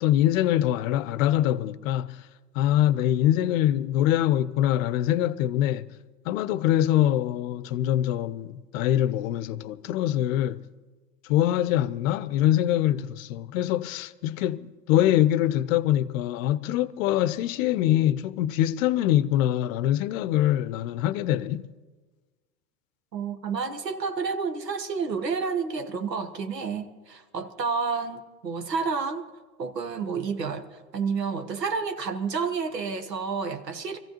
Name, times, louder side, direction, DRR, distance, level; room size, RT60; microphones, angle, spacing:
voice 1, 0.0-2.1 2.6-5.9 6.3-10.6 11.3-21.7, left 12 dB, 55° left, 0.7 m, -24 dB
voice 2, 23.1-29.2 29.6-34.0, right 5 dB, 90° right, 1.2 m, -30 dB
25.0 x 15.0 x 3.0 m
hypercardioid pair, 85°, 48 cm